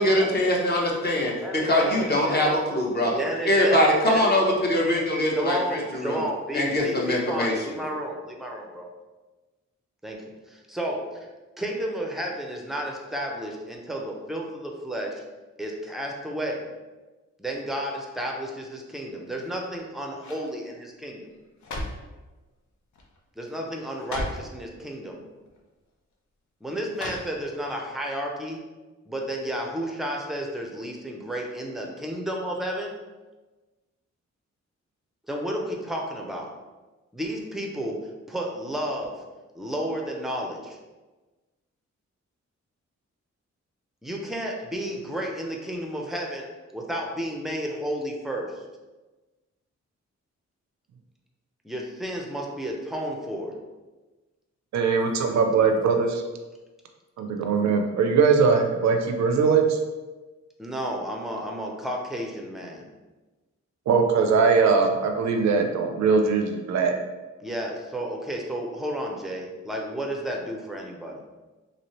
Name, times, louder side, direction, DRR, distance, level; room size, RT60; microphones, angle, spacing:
voice 1, 0.0-3.2 3.4-6.2 6.5-7.5, left 1 dB, 35° left, -2 dB, 0.7 m, -22 dB
voice 2, 1.4-2.6 3.1-4.4 5.4-8.9 10.0-11.3 11.6-15.2 15.6-16.6 17.4-21.2 23.4-25.2 26.6-28.6 29.1-32.9 35.3-36.5 37.1-38.0 38.3-39.1 39.5-40.8 44.0-46.5 46.7-48.6 51.6-53.5 55.0-55.1 60.6-62.8 67.4-71.2, equal, ahead, 0 dB, 0.5 m, -32 dB
sound 1, 19.3-19.8 20.2-20.5 21.3-22.1 22.9-23.2 23.5-23.6 23.9-24.5 25.5-25.6 26.9-27.7 28.1-28.2, left 1 dB, 80° left, 0.6 m, -36 dB
voice 3, 54.7-56.2 57.2-59.8 63.9-67.0, right 5 dB, 70° right, 4 dB, 0.5 m, -21 dB
3.0 x 2.7 x 2.9 m, 1.2 s
wide cardioid pair, 115°, 29 cm